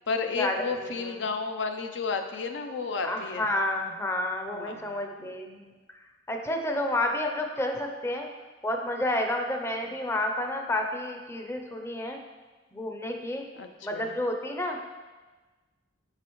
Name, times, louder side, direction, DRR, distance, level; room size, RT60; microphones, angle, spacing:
voice 1, 0.1-3.5 4.5-4.9 5.2-5.3 13.6-14.1, left 4 dB, 75° left, 6 dB, 0.5 m, -32 dB
voice 2, 3.0-5.7 6.3-8.3 8.6-12.2 12.7-13.4 13.8-14.8, left 1 dB, 15° left, 3 dB, 0.5 m, -30 dB
9.6 x 4.8 x 3.1 m, 1.3 s
head